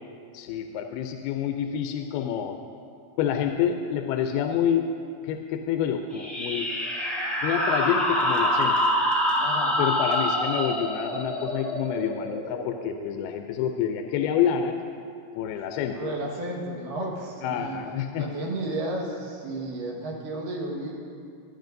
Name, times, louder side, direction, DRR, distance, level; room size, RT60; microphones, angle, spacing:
voice 1, 0.3-2.6 3.2-4.9 5.2-6.7 7.4-8.8 9.8-14.8 15.3-16.1 17.4-18.3, left 9 dB, 90° left, 5 dB, 2.5 m, -28 dB
sound 1, 6.1-13.3, equal, ahead, 1.0 m, -26 dB
voice 2, 9.4-9.8 10.2-10.3 15.9-17.8 18.2-20.9, right 1 dB, 65° right, -2 dB, 3.0 m, -33 dB
21.0 x 10.0 x 2.6 m, 2.5 s
omnidirectional pair, 4.4 m